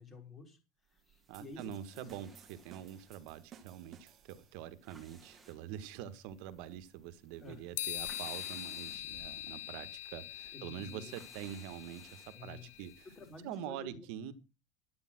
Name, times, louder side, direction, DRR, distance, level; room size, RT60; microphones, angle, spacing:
voice 1, 0.0-2.1 7.4-7.8 10.5-11.1 12.3-12.9 13.2-14.1, left 3 dB, 15° left, 4 dB, 3.7 m, -51 dB
sound 1, 0.9-13.5, right 4 dB, 5° right, 2.4 m, -61 dB
sound 2, 1.3-4.8, right 8 dB, 25° right, 1.4 m, -58 dB
voice 2, 1.3-12.9 13.4-14.3, right 11 dB, 50° right, 12 dB, 1.6 m, -45 dB
sound 3, 7.8-13.1, left 15 dB, 70° left, 0.6 m, -43 dB
12.0 x 8.9 x 6.1 m, 0.30 s
cardioid pair, 180°, 0 cm